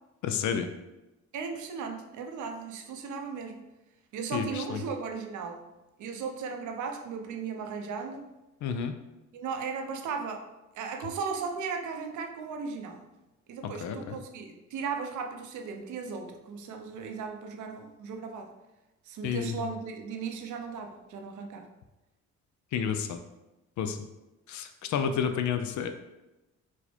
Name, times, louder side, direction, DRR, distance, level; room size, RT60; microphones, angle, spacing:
voice 1, 0.2-0.7 4.3-4.8 8.6-8.9 13.6-14.2 19.2-19.6 22.7-23.2 23.8-24.0 24.5-25.9, left 7 dB, 70° left, 8 dB, 0.5 m, -30 dB
voice 2, 1.3-3.6 4.1-5.6 6.0-8.2 9.3-10.4 10.7-13.0 13.5-18.5 19.1-21.7, right 5 dB, 75° right, 5 dB, 0.7 m, -36 dB
4.6 x 2.2 x 4.3 m, 1.0 s
cardioid pair, 90°, 30 cm